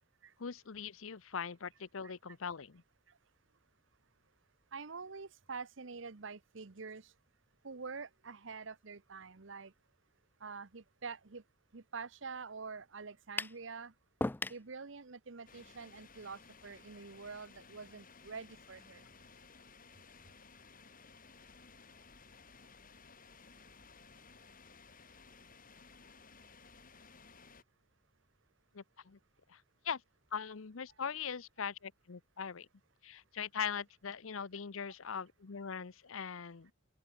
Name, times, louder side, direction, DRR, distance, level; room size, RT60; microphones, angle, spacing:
voice 1, 0.4-2.8 28.7-29.2 29.5-30.0 30.3-32.7 33.0-36.7, left 6 dB, 80° left, 0.8 m, -41 dB
voice 2, 4.7-7.1 7.6-9.7 10.4-11.4 11.7-13.9 14.5-19.0, right 4 dB, 65° right, 1.0 m, -46 dB
sound 1, 13.4-13.6 14.2-14.7, left 2 dB, 10° left, 0.3 m, -36 dB
sound 2, 15.5-27.6, left 4 dB, 45° left, 5.2 m, -58 dB
open air
head